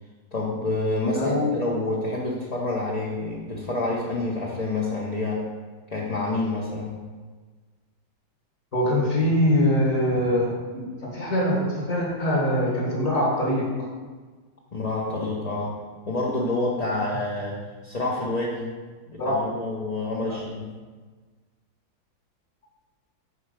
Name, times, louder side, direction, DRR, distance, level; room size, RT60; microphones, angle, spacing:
voice 1, 0.3-5.5 5.9-7.0 14.7-15.8 16.1-18.7 19.1-20.8, left 2 dB, 25° left, -4 dB, 1.0 m, -28 dB
voice 2, 1.1-1.5 8.7-13.8 19.2-19.3 20.3-20.4, equal, 40° left, -5 dB, 2.4 m, -23 dB
9.7 x 4.6 x 6.8 m, 1.4 s
omnidirectional pair, 2.1 m